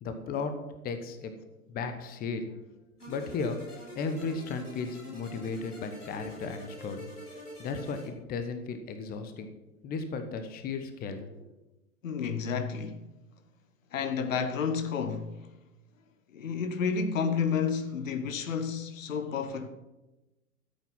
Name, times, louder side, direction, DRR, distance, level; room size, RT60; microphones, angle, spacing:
voice 1, 0.0-0.5 0.8-1.3 1.7-2.5 3.1-3.6 3.9-7.1 7.6-9.5 9.8-11.4, left 4 dB, 20° left, 1.1 m, -35 dB
sound 1, 3.0-8.1, left 1 dB, 85° left, 4.7 m, -46 dB
voice 2, 12.0-13.1 13.9-15.3 16.3-19.7, left 6 dB, 60° left, 1.3 m, -30 dB
13.5 x 8.4 x 5.9 m
figure-of-eight pair, 100°, 44 cm